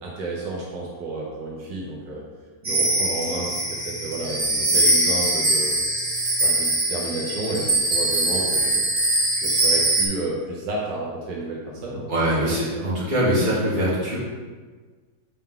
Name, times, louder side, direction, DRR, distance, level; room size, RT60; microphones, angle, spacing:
voice 1, 0.0-2.2 2.6-5.8 6.1-12.1 12.4-12.9, right 2 dB, 80° right, -4 dB, 1.6 m, -31 dB
sound 1, 2.6-10.1, right 1 dB, 25° right, 1.0 m, -22 dB
voice 2, 12.1-14.2, equal, 40° right, -8 dB, 2.2 m, -22 dB
7.0 x 4.4 x 3.7 m, 1.4 s
omnidirectional pair, 1.9 m